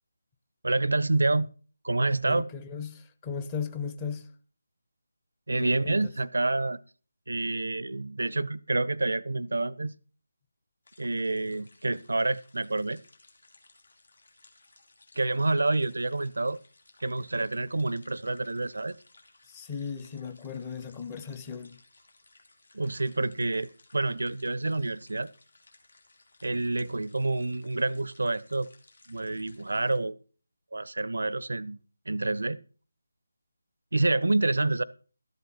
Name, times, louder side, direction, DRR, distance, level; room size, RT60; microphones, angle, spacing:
voice 1, 0.6-1.5 1.8-2.5 5.5-6.8 7.3-10.0 11.0-13.0 15.2-16.6 17.0-19.0 22.7-25.3 26.4-28.7 29.1-30.2 30.7-31.8 32.1-32.6 33.9-34.8, right 2 dB, 60° right, 0.5 m, -28 dB
voice 2, 2.2-4.3 5.6-6.0 19.5-21.8, left 6 dB, 15° left, 0.7 m, -37 dB
sound 1, 10.8-30.0, left 2 dB, 60° left, 3.4 m, -60 dB
13.0 x 8.0 x 5.7 m
figure-of-eight pair, 155°, 0 cm